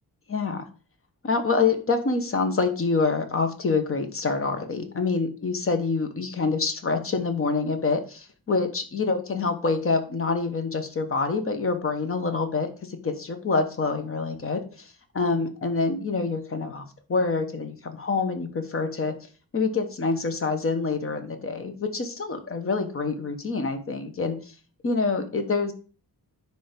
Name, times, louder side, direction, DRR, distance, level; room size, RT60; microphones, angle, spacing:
voice 1, 0.3-0.7 1.2-16.8 17.1-19.1 19.5-24.5 24.8-25.7, left 4 dB, 35° left, 7 dB, 1.1 m, -26 dB
9.9 x 3.5 x 5.2 m, 0.37 s
wide cardioid pair, 160°, 39 cm